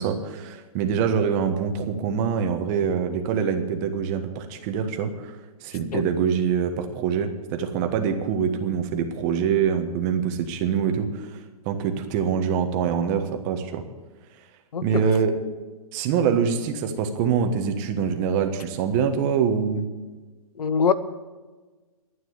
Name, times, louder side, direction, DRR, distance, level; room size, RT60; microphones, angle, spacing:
voice 1, 0.0-5.3 5.6-11.3 11.6-13.8 14.8-15.3 15.9-19.9, right 7 dB, 30° right, 6 dB, 1.3 m, -24 dB
voice 2, 14.7-15.1 20.6-20.9, left 6 dB, 85° left, 14 dB, 1.0 m, -23 dB
12.0 x 9.4 x 8.1 m, 1.3 s
hypercardioid pair, 155°, 19 cm